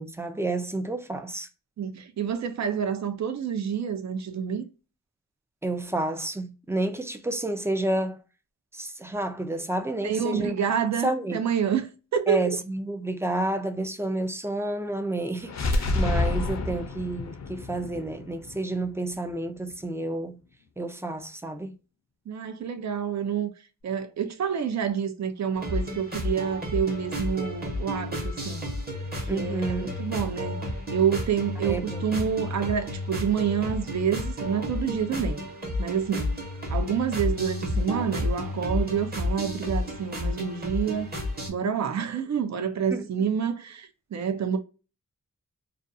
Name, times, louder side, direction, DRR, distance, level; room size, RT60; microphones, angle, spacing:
voice 1, 0.0-1.5 5.6-8.2 8.7-10.6 11.0-11.4 12.3-20.4 20.8-21.8 29.3-29.9 31.6-32.0 36.1-36.2 42.9-43.1, right 2 dB, 10° right, 0.3 m, -30 dB
voice 2, 1.8-4.7 10.0-12.6 22.3-23.5 23.8-28.6 29.3-30.5 30.9-35.4 35.8-36.4 36.7-41.1 41.5-44.6, right 7 dB, 60° right, 0.5 m, -28 dB
sound 1, 15.4-19.3, left 2 dB, 60° left, 0.5 m, -28 dB
sound 2, 25.5-41.5, left 1 dB, 30° right, 0.9 m, -31 dB
2.4 x 2.3 x 2.5 m
wide cardioid pair, 115°, 31 cm